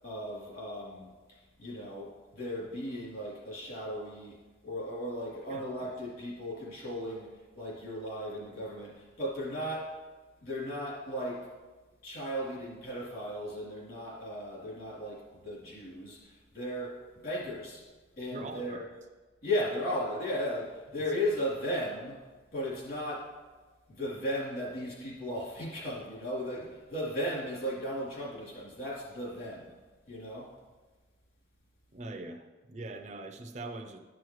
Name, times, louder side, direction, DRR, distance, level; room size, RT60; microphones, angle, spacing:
voice 1, 0.0-10.0 10.4-11.5 12.0-17.8 18.2-18.9 19.4-22.2 22.5-23.3 23.9-29.7 30.1-30.5, equal, 55° left, -6 dB, 2.9 m, -36 dB
voice 2, 18.3-18.8 21.1-21.3 31.9-34.0, right 2 dB, 40° right, 3 dB, 0.5 m, -42 dB
12.0 x 6.2 x 3.1 m, 1.3 s
head